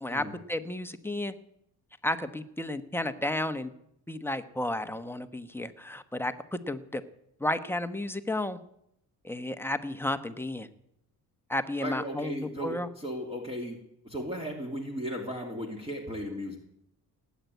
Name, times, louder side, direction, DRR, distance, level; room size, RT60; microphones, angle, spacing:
voice 1, 0.0-1.3 2.0-3.7 4.1-7.0 7.4-8.6 9.2-10.7 11.5-12.9, left 1 dB, 5° left, 9 dB, 1.1 m, -32 dB
voice 2, 11.8-13.8 14.0-16.6, equal, 15° right, 1 dB, 2.6 m, -36 dB
18.0 x 9.4 x 8.2 m, 0.77 s
cardioid pair, 105°, 37 cm